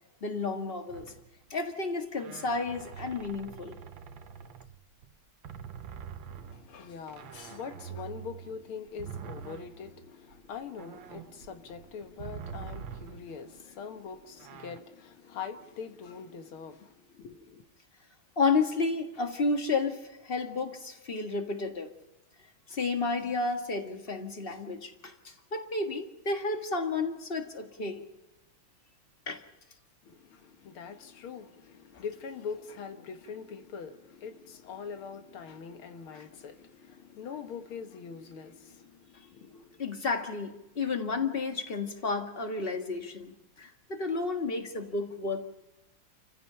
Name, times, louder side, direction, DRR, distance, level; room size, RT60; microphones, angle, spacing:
voice 1, 0.2-1.1 1.5-3.8 18.4-21.9 22.7-28.0 29.3-29.4 31.9-32.0 36.1-36.2 39.8-45.4, left 3 dB, 30° left, 1.7 m, -32 dB
sound 1, 0.9-1.5 2.2-5.1 5.4-13.6 14.4-14.8, right 7 dB, 70° right, 1.6 m, -45 dB
voice 2, 6.3-17.6 30.0-39.8, left 6 dB, 80° left, 2.2 m, -43 dB
30.0 x 15.0 x 5.7 m
omnidirectional pair, 2.3 m